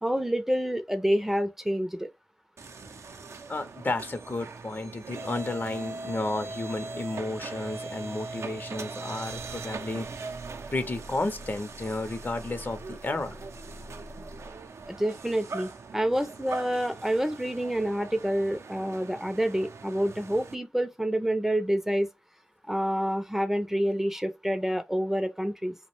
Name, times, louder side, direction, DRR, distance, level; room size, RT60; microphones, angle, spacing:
voice 1, 0.0-2.1 14.9-22.1 22.7-25.7, equal, 10° right, 0.4 m, -28 dB
sound 1, 2.6-20.6, right 3 dB, 90° right, 0.4 m, -40 dB
voice 2, 3.5-10.1 10.7-13.4, left 2 dB, 45° left, 0.5 m, -32 dB
2.5 x 2.1 x 2.8 m
wide cardioid pair, 80°, 5 cm